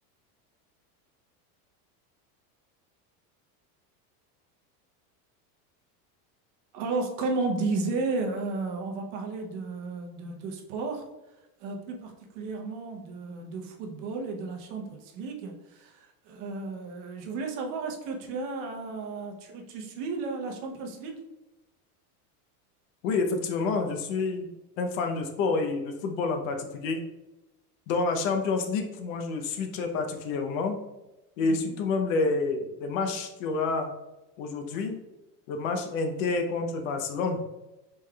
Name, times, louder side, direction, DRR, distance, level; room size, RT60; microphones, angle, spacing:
voice 1, 6.7-11.0 11.6-21.2 31.4-31.7, right 3 dB, 55° right, 2 dB, 0.8 m, -33 dB
voice 2, 23.0-24.5 24.8-27.0 27.9-30.8 31.4-33.9 34.4-35.0 35.5-37.4, left 4 dB, 60° left, 5 dB, 0.7 m, -28 dB
5.3 x 3.5 x 2.2 m, 1.0 s
supercardioid pair, 170°, 46 cm